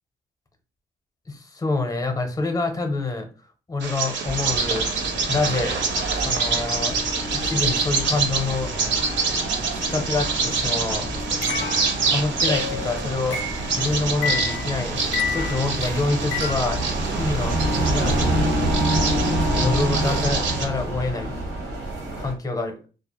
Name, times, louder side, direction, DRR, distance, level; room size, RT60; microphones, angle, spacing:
voice 1, 1.3-3.3 3.7-5.8 6.2-7.0 7.3-8.7 9.7-11.1 12.1-13.4 13.7-15.0 15.3-17.6 17.8-19.0 19.6-21.3 22.2-22.7, left 3 dB, 15° left, 4 dB, 0.6 m, -27 dB
Bird vocalization bird call bird song, 3.8-20.7, right 5 dB, 65° right, 0.6 m, -27 dB
sound 1, 4.2-22.3, right 1 dB, 90° right, 0.9 m, -27 dB
sound 2, 11.4-16.9, left 6 dB, 70° left, 0.4 m, -30 dB
2.3 x 2.0 x 2.9 m, 0.35 s
cardioid pair, 85°, 20 cm